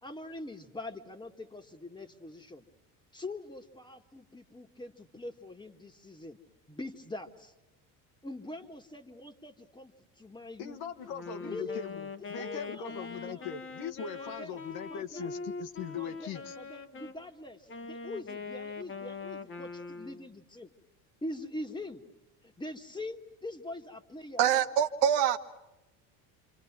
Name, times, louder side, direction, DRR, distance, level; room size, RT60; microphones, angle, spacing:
voice 1, 0.0-2.6 3.1-6.4 6.7-7.5 8.2-10.8 11.4-13.5 14.2-14.6 14.9-15.3 15.9-20.7 21.2-22.0 22.4-24.5, left 2 dB, 10° left, 5 dB, 1.7 m, -43 dB
voice 2, 10.6-16.5, left 7 dB, 60° left, 9 dB, 1.5 m, -40 dB
Wind instrument woodwind instrument, 11.0-17.2 17.7-20.3, left 4 dB, 30° left, 1.3 m, -42 dB
voice 3, 24.4-25.4, right 9 dB, 70° right, 7 dB, 1.4 m, -25 dB
28.0 x 26.0 x 6.0 m, 1.0 s
supercardioid pair, 105°, 42 cm